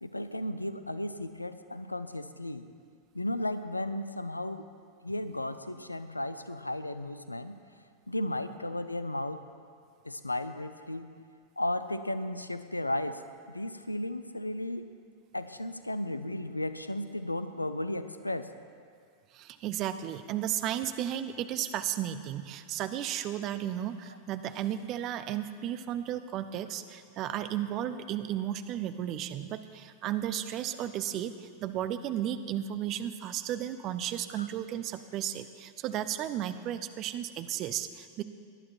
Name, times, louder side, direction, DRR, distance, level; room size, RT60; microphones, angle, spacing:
voice 1, 0.0-2.6 3.1-4.7 5.0-7.6 8.1-9.4 10.0-11.1 11.6-13.2 13.5-14.8 15.3-18.5 34.4-34.5, left 1 dB, 85° left, 11 dB, 0.6 m, -34 dB
voice 2, 19.3-38.2, right 11 dB, 35° right, 11 dB, 0.7 m, -34 dB
18.5 x 11.0 x 4.6 m, 2.1 s
figure-of-eight pair, 90°, 0 cm